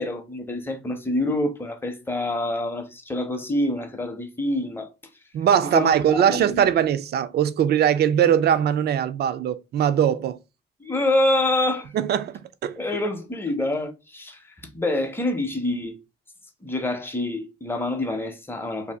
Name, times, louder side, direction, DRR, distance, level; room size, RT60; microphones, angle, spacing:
voice 1, 0.0-4.9 5.7-6.6 10.8-11.9 12.8-16.0 16.6-18.9, left 1 dB, 10° left, 0.7 m, -26 dB
voice 2, 5.3-10.4 11.9-12.8, right 9 dB, 55° right, 0.4 m, -21 dB
2.7 x 2.4 x 3.3 m
cardioid pair, 90°, 20 cm